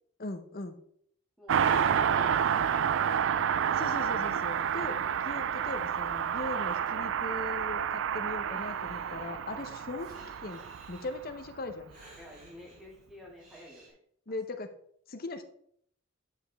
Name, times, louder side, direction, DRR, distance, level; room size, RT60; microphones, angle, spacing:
voice 1, 0.2-0.8 1.7-1.9 3.7-5.0 5.2-10.6 10.9-11.9 14.3-14.7 15.1-15.4, left 2 dB, 45° left, 9 dB, 0.7 m, -39 dB
voice 2, 1.4-3.5 9.1-9.8 12.2-14.0, left 1 dB, ahead, -3 dB, 2.2 m, -52 dB
Car passing by, 1.5-11.5 11.7-11.8, right 8 dB, 60° right, 0.3 m, -29 dB
Breathing, 6.7-13.9, right 1 dB, 40° right, 3.0 m, -58 dB
9.3 x 5.1 x 3.4 m, 0.66 s
head